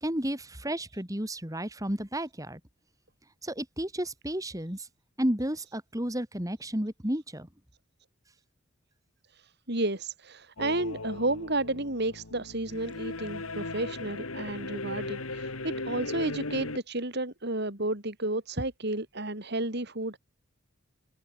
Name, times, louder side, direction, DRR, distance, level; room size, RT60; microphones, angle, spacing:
voice 1, 0.0-2.6 3.4-4.9 5.2-7.5, right 1 dB, 15° right, 3.2 m, -32 dB
voice 2, 9.3-20.2, right 2 dB, 50° right, 4.4 m, -32 dB
sound 1, 10.6-16.8, left 2 dB, 85° left, 2.6 m, -37 dB
open air
head